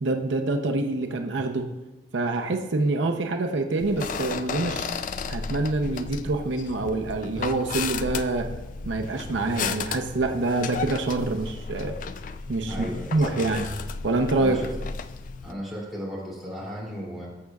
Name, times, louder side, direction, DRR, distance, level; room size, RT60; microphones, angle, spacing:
voice 1, 0.0-1.7 2.1-4.9 5.3-8.5 8.8-11.9 12.5-12.9 13.1-13.7 14.0-14.6, right 2 dB, 85° right, 5 dB, 0.6 m, -26 dB
sound 1, 3.8-15.5, left 5 dB, 45° left, 0.3 m, -34 dB
voice 2, 12.7-13.5 14.4-14.7 15.4-17.3, equal, ahead, -7 dB, 2.7 m, -35 dB
14.0 x 6.4 x 2.3 m, 1.0 s
head